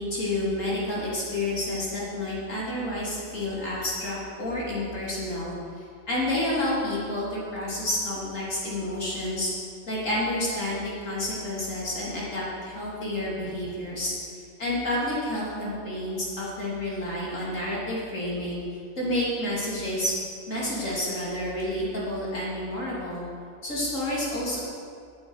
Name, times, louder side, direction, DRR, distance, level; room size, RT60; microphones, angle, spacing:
voice 1, 0.0-9.5 9.9-14.1 14.6-18.6 19.0-20.1 20.5-23.3 23.6-24.6, left 1 dB, 85° left, -6 dB, 3.5 m, -29 dB
8.8 x 8.6 x 8.1 m, 2.3 s
omnidirectional pair, 1.3 m